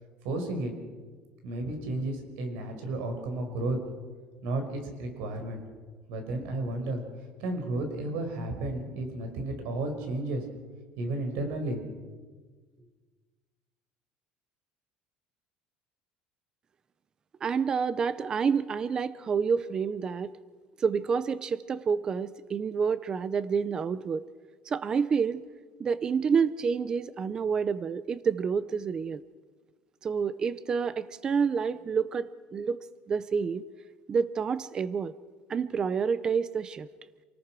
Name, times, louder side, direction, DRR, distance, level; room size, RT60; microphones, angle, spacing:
voice 1, 0.2-0.7 1.4-3.8 4.4-5.6 6.1-7.0 7.4-10.4 11.0-11.8, right 2 dB, 80° right, 5 dB, 5.5 m, -32 dB
voice 2, 17.4-20.3 20.8-24.2 24.7-25.4 25.8-29.2 30.0-32.8 33.1-33.6 34.1-35.1 35.5-36.9, right 6 dB, 25° right, 16 dB, 0.5 m, -28 dB
27.5 x 19.0 x 6.1 m, 1.4 s
cardioid pair, 165°, 3 cm